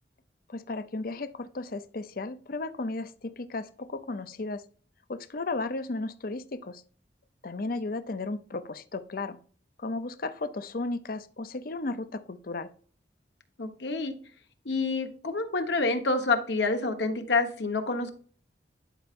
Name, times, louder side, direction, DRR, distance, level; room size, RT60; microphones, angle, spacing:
voice 1, 0.5-4.6 5.1-6.8 7.4-9.4 9.8-12.7, left 3 dB, 50° left, 12 dB, 0.6 m, -34 dB
voice 2, 13.6-14.1 14.6-18.1, left 3 dB, 75° left, 6 dB, 1.3 m, -28 dB
11.0 x 5.6 x 2.6 m, 0.43 s
head